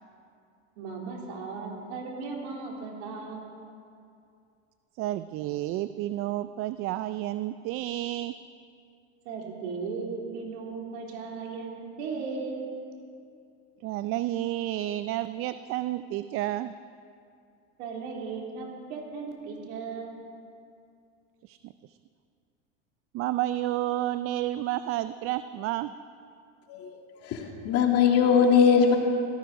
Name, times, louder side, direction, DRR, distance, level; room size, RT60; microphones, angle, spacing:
voice 1, 0.8-3.5 9.3-12.7 17.8-20.1, right 4 dB, 70° right, 0 dB, 3.5 m, -36 dB
voice 2, 5.0-8.3 13.8-16.7 21.4-22.0 23.1-25.9, right 14 dB, 40° right, 13 dB, 0.4 m, -31 dB
voice 3, 26.7-29.0, left 6 dB, 45° left, 2 dB, 2.2 m, -21 dB
18.0 x 13.5 x 5.0 m, 2.4 s
supercardioid pair, 120°, 35 cm